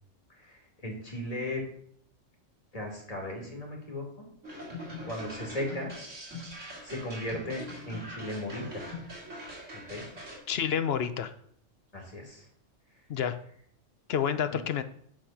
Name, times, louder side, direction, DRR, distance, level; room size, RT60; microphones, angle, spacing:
voice 1, 0.4-1.6 2.7-4.3 5.1-5.9 6.8-9.0 9.7-10.1 11.9-12.5 14.5-14.6, left 1 dB, 30° left, -1 dB, 2.4 m, -37 dB
sound 1, 4.4-10.4, left 1 dB, 70° right, 3.2 m, -42 dB
voice 2, 10.5-11.3 13.1-13.4 14.1-14.8, left 8 dB, 60° left, 11 dB, 0.7 m, -29 dB
10.5 x 4.2 x 5.7 m, 0.65 s
omnidirectional pair, 1.3 m